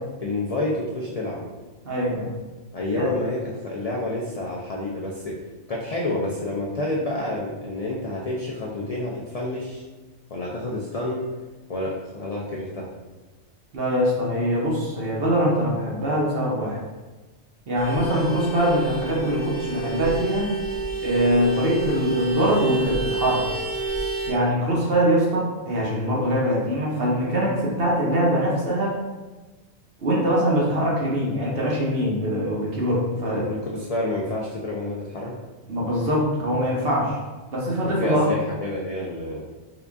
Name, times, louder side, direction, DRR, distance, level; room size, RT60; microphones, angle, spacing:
voice 1, 0.2-1.4 2.7-5.4 5.7-9.8 10.3-11.3 11.7-12.9 33.2-35.4 37.8-39.4, left 2 dB, 65° left, -4 dB, 0.3 m, -29 dB
voice 2, 1.8-2.3 3.0-3.1 13.7-16.8 17.7-20.5 21.0-23.4 24.3-29.0 30.0-33.4 35.7-37.2 37.5-38.2, equal, 55° right, -4 dB, 0.9 m, -23 dB
Vehicle horn car horn honking, 17.7-24.3, right 4 dB, 25° right, 0.9 m, -29 dB
3.8 x 2.4 x 3.4 m, 1.2 s
omnidirectional pair, 1.2 m